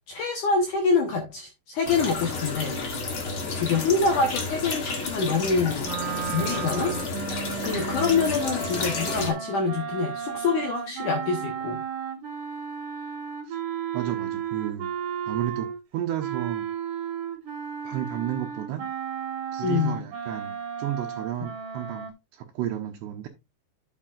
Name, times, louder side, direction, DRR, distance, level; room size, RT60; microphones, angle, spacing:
voice 1, 0.1-2.8 3.6-5.9 6.3-7.0 7.6-11.8 19.6-20.0, left 4 dB, 65° left, 2.1 m, -25 dB
sound 1, 1.8-9.3, left 3 dB, 80° left, 1.1 m, -31 dB
sound 2, 5.8-15.8 16.2-22.1, right 8 dB, 60° right, 2.7 m, -34 dB
voice 2, 13.9-14.9 15.3-16.7 17.8-18.9 19.5-20.5 20.8-23.3, right 12 dB, 75° right, 2.9 m, -32 dB
10.5 x 7.4 x 2.5 m
omnidirectional pair, 5.2 m